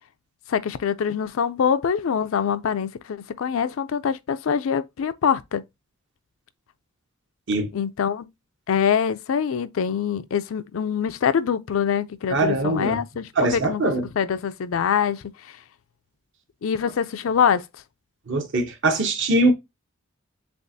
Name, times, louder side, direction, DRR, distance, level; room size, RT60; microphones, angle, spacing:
voice 1, 0.5-5.6 7.7-8.3 8.7-15.6 16.6-17.6, left 7 dB, 70° left, 0.4 m, -24 dB
voice 2, 12.3-13.0 13.4-14.0 18.3-19.5, right 2 dB, 60° right, 0.9 m, -22 dB
6.9 x 2.4 x 2.6 m
head